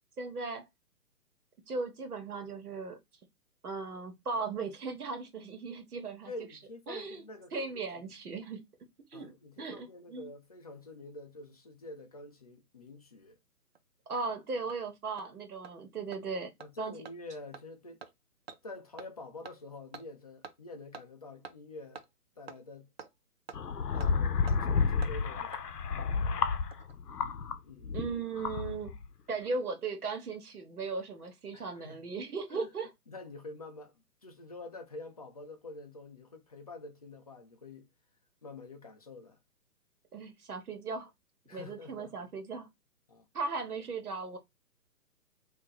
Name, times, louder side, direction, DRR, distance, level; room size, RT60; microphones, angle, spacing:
voice 1, 0.2-0.7 1.7-3.0 3.6-6.3 6.9-7.2 7.5-8.6 9.1-9.3 9.6-10.3 14.1-16.5 16.8-16.9 27.9-28.9 29.3-32.9 40.1-41.1 41.5-42.7 43.3-44.4, right 4 dB, 70° right, 1.4 m, -37 dB
voice 2, 6.3-8.2 9.1-13.4 16.6-18.0 18.6-22.0 22.4-22.9 23.9-25.6 27.6-28.0 31.5-32.1 32.5-32.7 33.1-37.9 38.4-39.4 41.5-42.3 43.1-43.3, left 2 dB, 25° left, 0.5 m, -47 dB
Hammer, 13.8-13.9 14.2-14.3 14.7-14.8 15.2-15.3 15.6-15.7 16.1-16.2 16.6-16.7 17.1-17.2 17.5-17.6 18.0-18.1 18.5-18.6 19.0-19.1 19.5-19.6 19.9-20.0 20.4-20.5 20.9-21.0 21.4-21.5 22.0-22.1 22.5-22.6 23.0-23.1 23.5-23.6 24.0-24.1 24.5-24.6 25.0-25.1 25.5-25.6 26.5-26.9 27.2-27.3, right 6 dB, 45° right, 0.5 m, -47 dB
sound 1, 23.5-27.6 27.8-29.1, left 5 dB, 85° left, 0.7 m, -31 dB
3.0 x 2.7 x 3.9 m
figure-of-eight pair, 140°, 46 cm